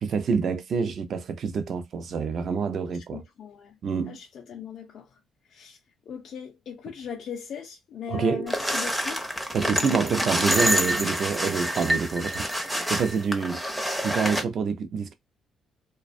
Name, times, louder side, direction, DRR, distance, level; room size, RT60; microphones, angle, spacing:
voice 1, 0.0-3.2 3.8-4.2 8.1-8.5 9.5-15.1, right 5 dB, 55° right, 0.5 m, -27 dB
voice 2, 2.9-3.8 4.0-5.8 6.1-10.5, left 7 dB, 60° left, 0.4 m, -40 dB
sound 1, 8.5-14.4, equal, 5° right, 0.5 m, -27 dB
2.4 x 2.2 x 2.5 m
cardioid pair, 105°, 0 cm